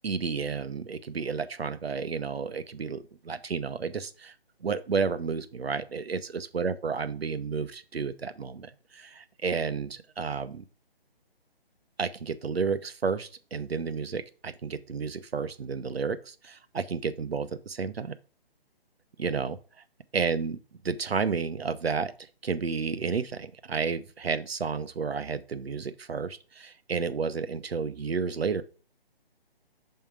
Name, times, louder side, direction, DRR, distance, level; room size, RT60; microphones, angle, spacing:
voice 1, 0.0-4.3 4.6-10.6 12.0-18.1 19.2-19.6 20.1-20.6 20.8-22.1 22.4-28.6, right 5 dB, 75° right, 12 dB, 0.8 m, -31 dB
5.6 x 4.5 x 4.8 m, 0.36 s
figure-of-eight pair, 150°, 31 cm